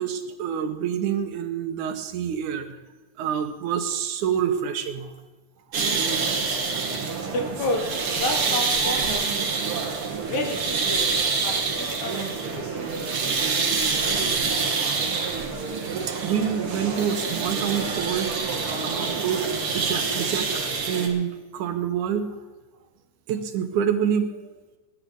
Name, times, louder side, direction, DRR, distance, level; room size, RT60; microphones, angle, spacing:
voice 1, 0.0-2.7 3.2-5.1 6.7-6.8 16.1-22.4 23.3-24.4, right 8 dB, 85° right, 7 dB, 2.7 m, -27 dB
sound 1, 5.7-21.1, right 4 dB, 50° right, 2.5 m, -26 dB
voice 2, 7.3-9.5 10.3-11.2 11.4-12.9, left 2 dB, 75° left, 3 dB, 3.5 m, -31 dB
20.0 x 10.5 x 4.0 m, 1.2 s
omnidirectional pair, 3.4 m